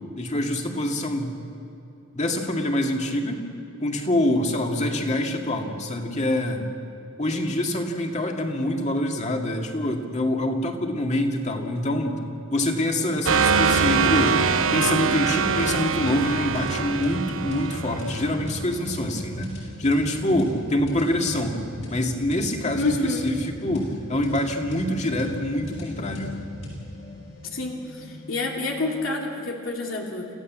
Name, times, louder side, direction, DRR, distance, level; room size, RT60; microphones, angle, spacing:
voice 1, 0.2-1.3 2.1-3.4 3.8-6.6 7.2-12.2 12.5-14.4 14.7-19.5 19.8-21.6 21.9-26.4, left 1 dB, 35° left, 2 dB, 2.3 m, -25 dB
sound 1, 13.3-18.7, right 5 dB, 85° right, 0.7 m, -23 dB
sound 2, 13.6-28.9, equal, 65° left, 7.5 m, -38 dB
voice 2, 22.7-23.3 27.5-30.3, left 2 dB, 90° left, 0 dB, 2.7 m, -28 dB
28.0 x 15.5 x 7.5 m, 2.8 s
head